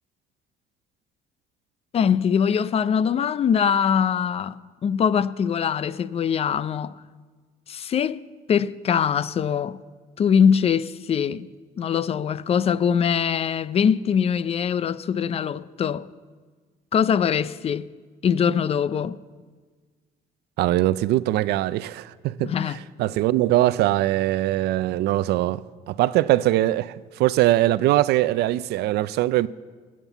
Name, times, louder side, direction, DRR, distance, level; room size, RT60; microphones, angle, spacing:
voice 1, 1.9-7.0 7.7-8.2 8.5-9.8 10.2-11.5 11.8-16.1 16.9-17.9 18.2-19.2 22.4-22.8, left 7 dB, 35° left, 0.4 m, -22 dB
voice 2, 20.6-29.5, right 15 dB, 75° right, 0.4 m, -22 dB
17.5 x 7.3 x 8.1 m
cardioid pair, 110°, 17 cm